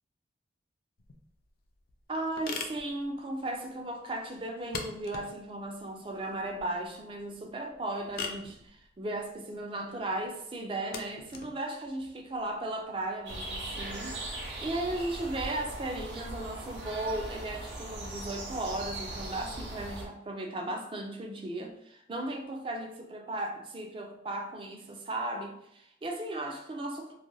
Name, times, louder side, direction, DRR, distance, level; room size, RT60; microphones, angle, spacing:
sound 1, 1.0-13.4, left 4 dB, 55° left, 0.3 m, -44 dB
voice 1, 2.1-27.1, right 1 dB, 30° right, 0.3 m, -36 dB
sound 2, 13.3-20.1, right 1 dB, 85° right, 0.6 m, -39 dB
2.4 x 2.2 x 3.0 m
head